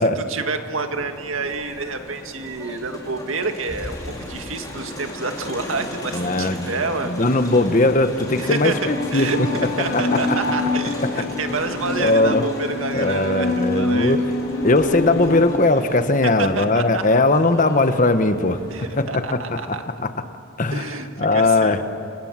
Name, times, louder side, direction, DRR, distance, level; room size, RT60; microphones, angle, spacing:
voice 1, 0.2-7.4 8.4-13.5 13.8-14.2 16.4-17.2 18.7-19.8 20.7-21.8, right 3 dB, 75° right, 6 dB, 2.0 m, -28 dB
Crowd, 0.8-19.1, left 1 dB, 20° left, 5.2 m, -36 dB
voice 2, 6.1-6.7 7.1-9.5 9.9-10.2 12.0-12.4 12.9-14.2 14.6-18.6 19.0-20.1 20.6-20.9 21.2-21.8, left 2 dB, 40° left, 9 dB, 1.2 m, -19 dB
sound 1, 8.7-15.4, left 2 dB, 60° left, 4.7 m, -26 dB
29.5 x 25.5 x 7.5 m, 2.5 s
head